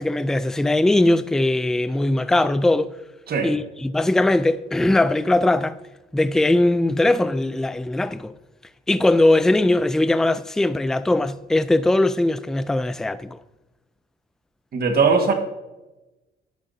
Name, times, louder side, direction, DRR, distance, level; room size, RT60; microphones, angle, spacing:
voice 1, 0.0-2.9 3.4-5.8 6.1-8.3 8.9-13.4, left 2 dB, ahead, 0.3 m, -20 dB
voice 2, 14.7-15.3, right 5 dB, 50° right, 1.5 m, -19 dB
10.5 x 9.5 x 2.7 m
cardioid pair, 90°, 20 cm